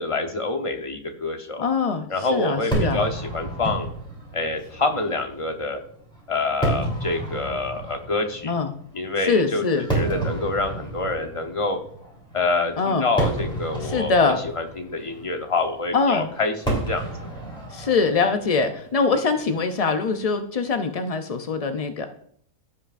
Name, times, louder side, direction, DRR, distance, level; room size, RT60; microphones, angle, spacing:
voice 1, 0.0-1.6 2.1-3.9 4.3-5.8 6.3-8.5 8.9-9.6 9.9-11.8 12.3-17.1, left 3 dB, 25° left, 5 dB, 0.8 m, -26 dB
voice 2, 1.6-3.0 8.4-8.7 9.2-9.9 12.8-13.1 13.8-14.4 15.9-16.3 17.7-22.1, left 4 dB, 70° left, 6 dB, 0.3 m, -23 dB
Fireworks, 2.7-20.0, right 2 dB, 5° left, 3.3 m, -32 dB
15.5 x 5.6 x 2.5 m, 0.62 s
omnidirectional pair, 1.5 m